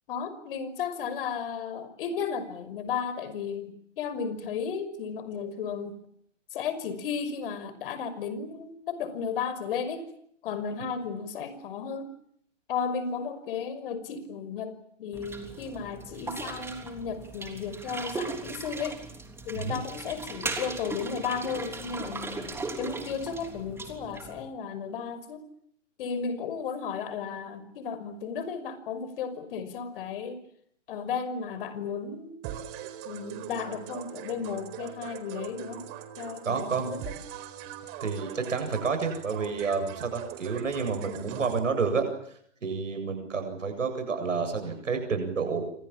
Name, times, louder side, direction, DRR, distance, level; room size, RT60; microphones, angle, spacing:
voice 1, 0.1-5.9 6.5-10.1 10.4-12.1 12.7-19.1 19.4-25.4 26.0-30.4 30.9-32.4 33.0-35.8 36.2-37.1, left 6 dB, 45° left, 13 dB, 5.8 m, -34 dB
sound 1, 15.1-24.4, right 3 dB, 5° right, 3.4 m, -38 dB
sound 2, 32.4-41.6, right 11 dB, 30° right, 4.2 m, -41 dB
voice 2, 36.4-36.9 38.0-45.7, right 5 dB, 80° right, 6 dB, 7.9 m, -30 dB
29.0 x 25.5 x 7.5 m, 0.70 s
hypercardioid pair, 140°, 37 cm